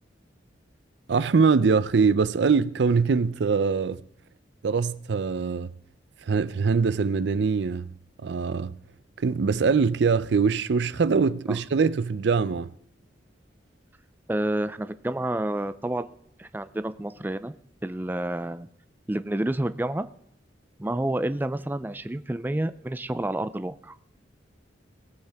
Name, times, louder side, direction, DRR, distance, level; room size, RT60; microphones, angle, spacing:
voice 1, 1.1-4.0 4.6-5.7 6.3-7.9 8.2-8.8 9.2-12.7, right 5 dB, 70° right, 0.5 m, -23 dB
voice 2, 14.3-16.1 16.4-17.5 17.8-18.7 19.1-20.1 20.8-24.0, right 1 dB, 10° right, 0.4 m, -29 dB
19.0 x 8.3 x 3.5 m
head